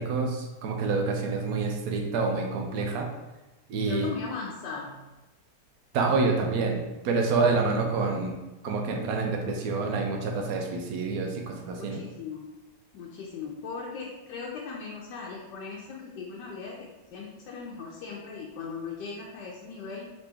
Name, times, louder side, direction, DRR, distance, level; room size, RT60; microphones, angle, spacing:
voice 1, 0.0-3.1 3.7-4.1 5.9-8.3 8.6-12.0, right 4 dB, 75° right, 1 dB, 1.0 m, -27 dB
voice 2, 3.9-5.0 11.8-12.6 12.9-20.1, left 5 dB, 80° left, -3 dB, 1.2 m, -38 dB
3.3 x 3.0 x 3.3 m, 1.1 s
omnidirectional pair, 1.8 m